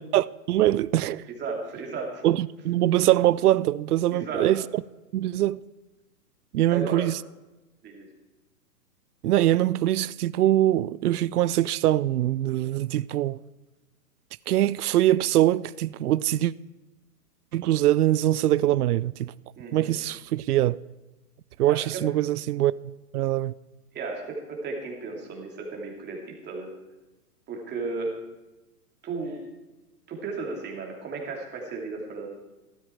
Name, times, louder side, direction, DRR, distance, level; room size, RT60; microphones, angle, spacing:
voice 1, 0.0-1.3 2.2-4.6 5.1-5.6 6.5-7.2 9.2-13.4 14.5-16.5 17.5-19.3 19.7-20.8 21.6-22.7 23.1-23.5, right 13 dB, 75° right, 0.5 m, -23 dB
voice 2, 1.3-2.3 4.1-4.5 6.7-7.0 7.8-8.1 19.6-20.0 21.6-21.8 23.9-26.7 27.5-28.2 29.0-29.4 30.1-32.3, right 4 dB, 20° right, 3.0 m, -34 dB
14.0 x 12.5 x 4.5 m
hypercardioid pair, 120°, 46 cm